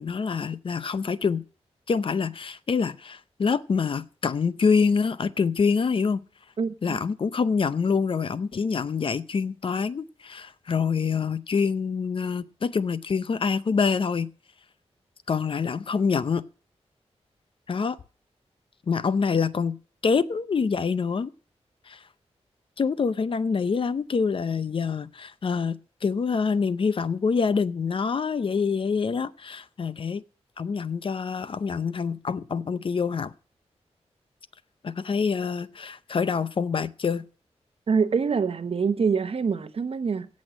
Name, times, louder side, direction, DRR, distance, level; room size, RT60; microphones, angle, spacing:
voice 1, 0.0-1.4 1.9-6.2 6.8-14.3 15.3-16.4 17.7-18.0 18.9-19.8 20.0-21.3 21.9-22.0 22.8-30.2 30.6-33.3 34.8-37.2, left 5 dB, 50° left, 0.6 m, -26 dB
voice 2, 6.6-7.0 37.9-40.3, right 5 dB, 55° right, 0.9 m, -25 dB
17.0 x 6.3 x 6.2 m
wide cardioid pair, 130°, 11 cm